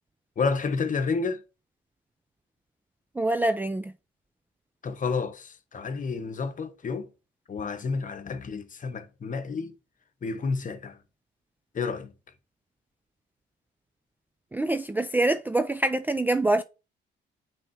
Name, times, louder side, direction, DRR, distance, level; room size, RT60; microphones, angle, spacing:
voice 1, 0.4-1.4 4.8-7.1 7.5-9.7 10.2-11.0 11.7-12.1, left 4 dB, 40° left, 1.0 m, -30 dB
voice 2, 3.1-3.9 14.5-16.6, right 2 dB, 10° right, 0.3 m, -25 dB
6.0 x 3.5 x 4.7 m
cardioid pair, 90°, 20 cm